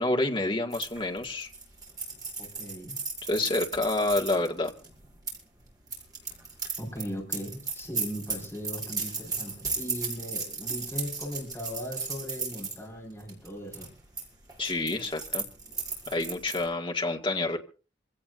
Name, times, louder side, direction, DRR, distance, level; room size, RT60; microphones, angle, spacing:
voice 1, 0.0-1.5 3.3-4.7 14.6-15.5 16.1-17.6, left 2 dB, 30° left, 1.9 m, -28 dB
sound 1, 0.7-5.4 5.9-12.8 13.2-13.5 13.7-14.2 14.5-16.6, right 4 dB, 20° right, 5.9 m, -35 dB
voice 2, 2.4-3.0 6.8-13.9, equal, 15° left, 4.9 m, -38 dB
26.5 x 17.0 x 2.6 m
head